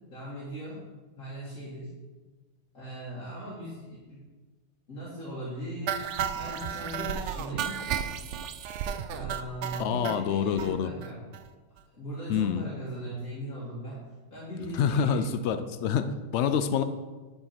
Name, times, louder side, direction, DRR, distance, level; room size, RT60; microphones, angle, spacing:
voice 1, 0.1-0.8 1.2-1.9 2.7-4.2 4.9-7.7 9.1-11.2 12.0-14.0 14.3-15.2, right 1 dB, 60° left, -10 dB, 2.5 m, -39 dB
sound 1, 5.9-10.2 10.6-10.7 11.0-11.1 11.3-11.5 11.8-11.9, right 8 dB, 70° right, 0.7 m, -33 dB
voice 2, 9.8-10.9 12.3-12.7 14.7-16.8, left 7 dB, 75° left, 9 dB, 0.6 m, -27 dB
10.5 x 4.6 x 4.3 m, 1.3 s
omnidirectional pair, 1.7 m